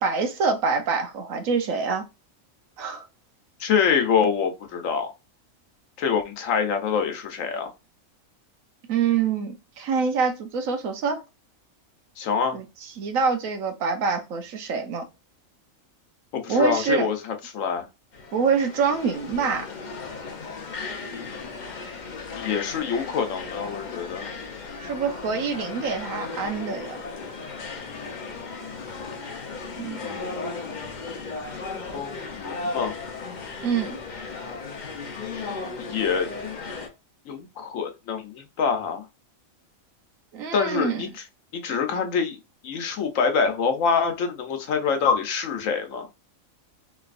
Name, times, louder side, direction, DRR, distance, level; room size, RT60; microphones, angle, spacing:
voice 1, 0.0-2.0 2.8-3.1 8.9-11.2 12.5-12.6 13.0-15.1 16.5-17.1 18.3-19.7 24.8-27.0 29.8-30.0 33.6-34.0 40.3-41.1, right 5 dB, 75° right, 1.2 m, -25 dB
voice 2, 3.6-5.1 6.0-7.7 12.2-12.6 16.3-17.9 22.4-24.3 31.9-32.9 35.8-36.3 37.3-39.1 40.5-41.2 41.5-42.4 42.6-46.1, left 6 dB, 70° left, 1.1 m, -25 dB
sound 1, 18.1-36.9, left 4 dB, 45° left, 0.7 m, -36 dB
3.9 x 3.2 x 2.4 m
omnidirectional pair, 1.4 m